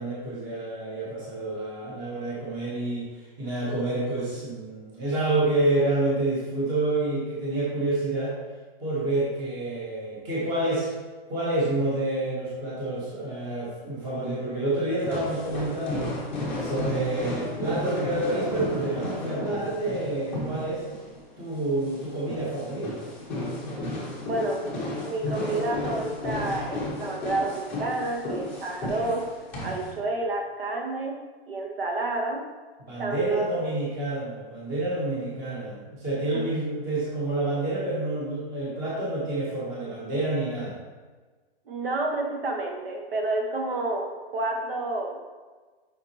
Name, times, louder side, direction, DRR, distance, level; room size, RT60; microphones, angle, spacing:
voice 1, 0.0-3.1 3.4-8.4 8.8-10.9 11.3-16.1 16.5-20.8 21.4-23.0 32.9-40.8, right 2 dB, 15° right, -7 dB, 1.0 m, -28 dB
sound 1, 15.0-29.9, left 1 dB, 5° left, 0.8 m, -33 dB
voice 2, 24.2-24.6 25.0-29.2 29.6-31.2 31.5-32.4 33.0-33.6 36.3-36.4 41.7-45.2, right 2 dB, 65° right, 1 dB, 1.3 m, -29 dB
7.1 x 5.2 x 2.9 m, 1.4 s
hypercardioid pair, 180°, 31 cm